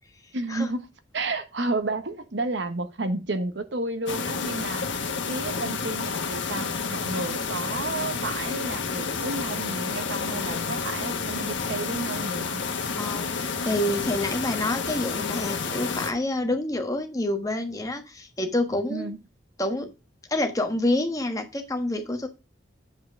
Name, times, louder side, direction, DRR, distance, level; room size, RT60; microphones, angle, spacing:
voice 1, 0.3-0.9 1.1-4.9 5.3-12.6 18.9-19.2, right 2 dB, 70° right, 1.1 m, -31 dB
sound 1, 4.1-16.1, left 5 dB, 80° left, 1.3 m, -30 dB
voice 2, 13.0-19.1 19.6-19.9 20.3-22.3, left 1 dB, 20° left, 1.2 m, -27 dB
8.0 x 5.3 x 4.6 m
head